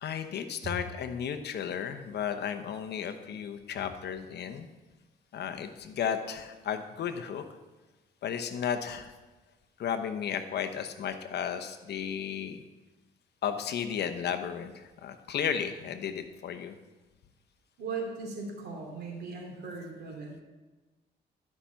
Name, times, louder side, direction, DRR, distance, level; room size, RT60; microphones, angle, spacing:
voice 1, 0.0-4.7 5.3-7.4 8.2-9.1 9.8-12.6 13.4-16.8, left 8 dB, 70° left, 8 dB, 1.0 m, -34 dB
voice 2, 17.8-20.3, right 4 dB, 65° right, 0 dB, 3.2 m, -38 dB
12.5 x 6.0 x 5.8 m, 1.2 s
cardioid pair, 90°, 18 cm